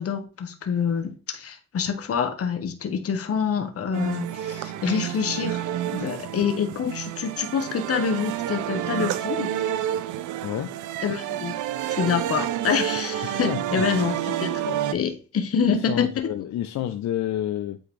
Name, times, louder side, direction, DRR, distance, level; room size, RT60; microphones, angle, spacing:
voice 1, 0.0-5.6 5.9-9.5 11.0-11.5 11.9-16.3, left 6 dB, 50° left, 1.2 m, -26 dB
sound 1, 3.9-14.9, right 11 dB, 75° right, 0.6 m, -29 dB
voice 2, 10.4-10.8 13.2-14.2 15.7-17.8, left 11 dB, 65° left, 0.6 m, -30 dB
8.7 x 3.8 x 3.3 m
cardioid pair, 90°, 30 cm